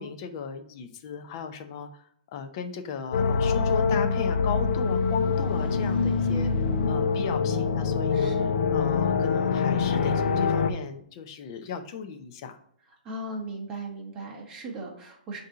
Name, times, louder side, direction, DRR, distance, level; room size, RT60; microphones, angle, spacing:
voice 1, 0.0-8.3 8.7-12.6, left 6 dB, 25° left, 7 dB, 0.5 m, -36 dB
sound 1, 3.1-10.7, left 5 dB, 85° left, 0.6 m, -24 dB
voice 2, 8.1-8.6 13.0-15.4, right 2 dB, 10° right, -2 dB, 0.9 m, -37 dB
6.5 x 2.7 x 5.5 m, 0.67 s
hypercardioid pair, 175°, 5 cm